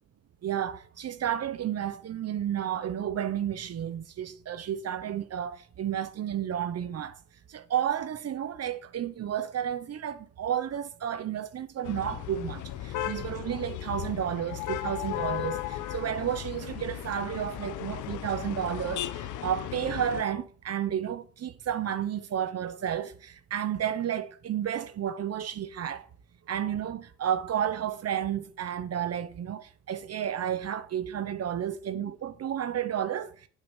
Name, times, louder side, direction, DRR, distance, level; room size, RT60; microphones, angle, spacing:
voice 1, 0.4-7.1 7.5-26.0 26.5-33.3, right 9 dB, 55° right, 1.0 m, -32 dB
sound 1, 11.8-20.2, left 13 dB, 80° left, 0.9 m, -36 dB
8.6 x 6.4 x 7.3 m
cardioid pair, 90°, 30 cm